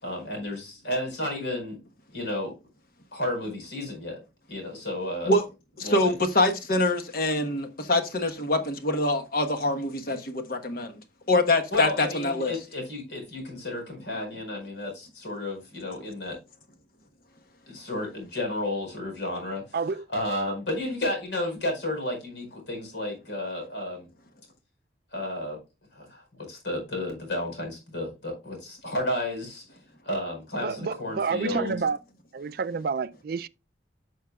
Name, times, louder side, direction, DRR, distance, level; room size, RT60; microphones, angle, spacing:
voice 1, 0.0-1.8 2.1-2.6 3.1-4.2 4.5-5.3 5.8-6.1 11.7-16.4 17.7-19.6 20.1-24.1 25.1-25.6 25.9-29.6 30.0-31.7, left 1 dB, 70° left, 4.9 m, -32 dB
voice 2, 5.8-10.9 11.3-12.5 31.5-31.8, left 2 dB, 50° left, 1.2 m, -25 dB
voice 3, 19.7-20.1 30.6-32.0 32.3-33.5, right 5 dB, 55° right, 0.4 m, -29 dB
11.0 x 6.5 x 2.3 m
head